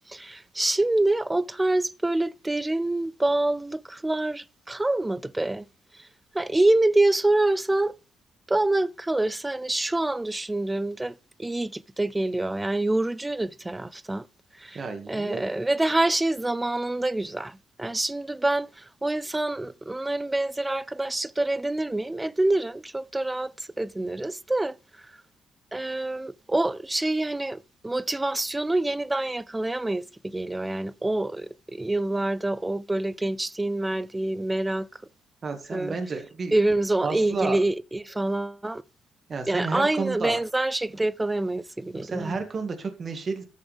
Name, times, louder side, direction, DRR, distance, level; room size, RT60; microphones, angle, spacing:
voice 1, 0.1-5.6 5.9-6.1 6.3-7.9 8.5-14.3 14.5-24.8 25.7-34.9 35.7-36.0 36.5-38.8 39.5-42.4, right 2 dB, 15° right, 0.5 m, -26 dB
voice 2, 14.7-15.4 35.4-36.5 37.0-37.6 39.3-40.4 41.9-43.4, right 4 dB, 40° right, 1.9 m, -31 dB
13.5 x 6.5 x 3.5 m
cardioid pair, 90°, 0 cm